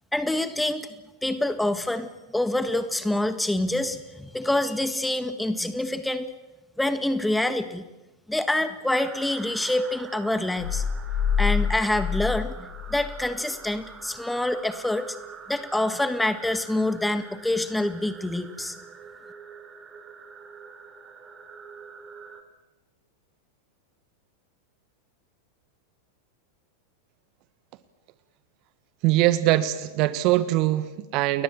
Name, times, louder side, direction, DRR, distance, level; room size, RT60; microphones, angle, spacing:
voice 1, 0.1-0.9 1.2-6.3 6.8-7.9 8.3-10.8 11.4-15.2 15.5-18.8, left 1 dB, 5° left, 11 dB, 1.8 m, -26 dB
sound 1, 8.9-22.4, right 5 dB, 20° right, 4.4 m, -45 dB
sound 2, 10.6-13.3, left 7 dB, 60° left, 7.5 m, -27 dB
voice 2, 29.0-31.4, right 15 dB, 40° right, 14 dB, 1.5 m, -22 dB
30.0 x 21.5 x 7.6 m, 1.1 s
figure-of-eight pair, 90°, 0 cm